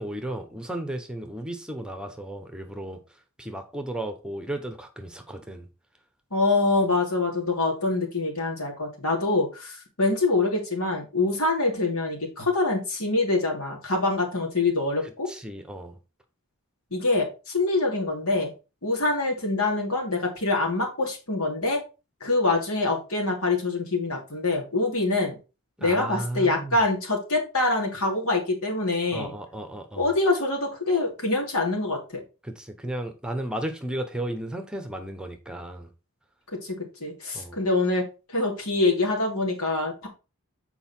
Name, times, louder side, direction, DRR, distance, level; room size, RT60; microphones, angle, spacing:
voice 1, 0.0-3.0 3.4-5.7 15.0-16.0 25.8-26.8 29.1-30.1 32.4-35.9 37.3-37.6, right 1 dB, 5° right, 0.9 m, -34 dB
voice 2, 6.3-15.3 16.9-18.5 18.8-21.8 22.2-25.4 25.8-29.3 30.0-32.2 36.5-38.0 38.3-40.1, left 2 dB, 80° left, 2.9 m, -25 dB
7.8 x 4.6 x 4.4 m
head